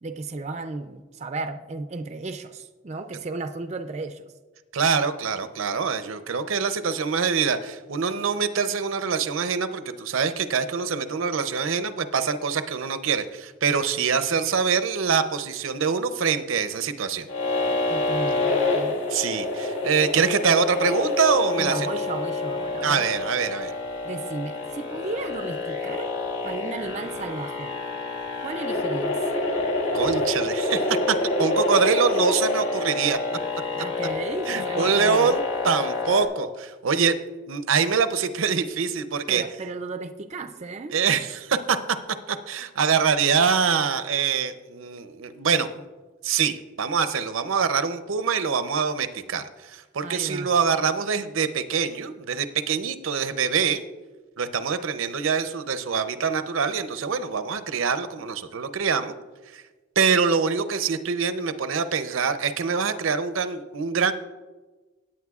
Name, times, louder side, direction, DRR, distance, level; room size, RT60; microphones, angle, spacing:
voice 1, 0.0-4.2 17.9-19.1 21.6-23.1 24.0-26.1 26.4-27.7 28.4-29.2 33.7-35.4 39.3-41.0 50.0-50.5, right 3 dB, 35° right, 7 dB, 0.4 m, -34 dB
voice 2, 4.7-17.3 19.1-21.9 22.8-23.7 29.9-33.2 34.5-37.2 37.5-39.4 40.9-41.8 42.3-45.7 46.2-53.8 54.4-59.1 59.5-59.6 60.0-64.1, right 6 dB, 85° right, 11 dB, 0.6 m, -24 dB
sound 1, 17.3-36.3, left 2 dB, 65° left, 1.8 m, -27 dB
17.0 x 8.7 x 2.4 m, 1.3 s
head